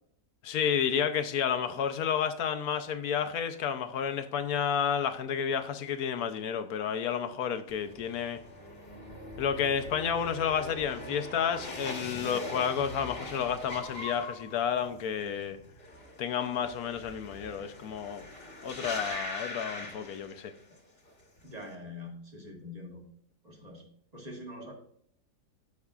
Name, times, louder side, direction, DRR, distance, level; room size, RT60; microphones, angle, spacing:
voice 1, 0.4-8.4 9.4-15.6 16.2-18.2 18.6-20.5, left 8 dB, 70° left, 1.1 m, -31 dB
sound 1, 7.7-20.8 21.1-21.6, left 2 dB, 35° left, 1.3 m, -42 dB
voice 2, 21.4-23.0 23.4-23.8 24.1-24.7, left 1 dB, 25° right, 1.6 m, -44 dB
14.0 x 4.7 x 2.4 m
omnidirectional pair, 1.7 m